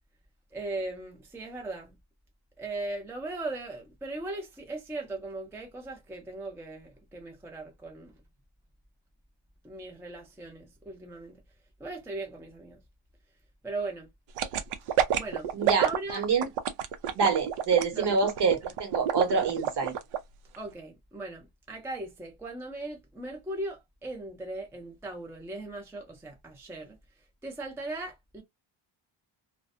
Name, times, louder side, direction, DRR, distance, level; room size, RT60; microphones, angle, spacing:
voice 1, 0.5-1.9 2.6-8.1 9.6-11.4 11.8-12.8 13.6-14.1 15.2-15.5 15.8-16.4 17.9-18.2 20.6-27.0 27.4-28.4, right 2 dB, 5° right, 0.5 m, -38 dB
sound 1, 14.4-20.2 20.5-20.6, right 10 dB, 85° right, 0.6 m, -28 dB
voice 2, 15.5-16.5 17.1-19.9, right 5 dB, 55° right, 1.0 m, -26 dB
2.5 x 2.1 x 2.4 m
cardioid pair, 140°, 48 cm